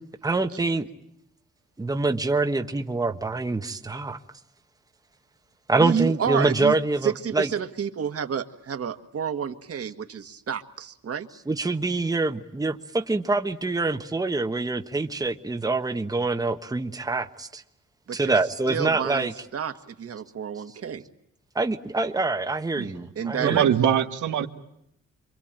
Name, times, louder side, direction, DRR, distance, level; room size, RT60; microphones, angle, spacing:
voice 1, 0.2-0.9 1.8-4.2 5.7-7.5 11.5-17.6 18.1-19.3 21.5-23.6, right 3 dB, 10° right, 6 dB, 1.2 m, -25 dB
voice 2, 5.8-6.8 7.0-11.3 18.1-18.4 18.7-21.0 23.1-23.6, right 7 dB, 50° right, 8 dB, 1.8 m, -30 dB
voice 3, 23.4-24.5, right 9 dB, 90° right, 5 dB, 1.7 m, -22 dB
28.0 x 23.5 x 9.0 m, 0.77 s
cardioid pair, 125°, 29 cm